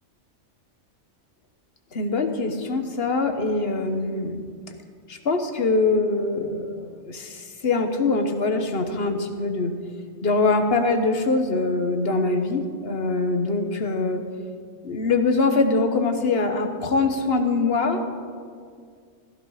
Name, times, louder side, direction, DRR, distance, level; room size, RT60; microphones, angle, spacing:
voice 1, 1.9-4.4 5.1-9.8 10.2-14.2 14.8-18.0, left 3 dB, 55° left, 6 dB, 1.4 m, -23 dB
15.5 x 14.0 x 5.0 m, 2.1 s
omnidirectional pair, 1.3 m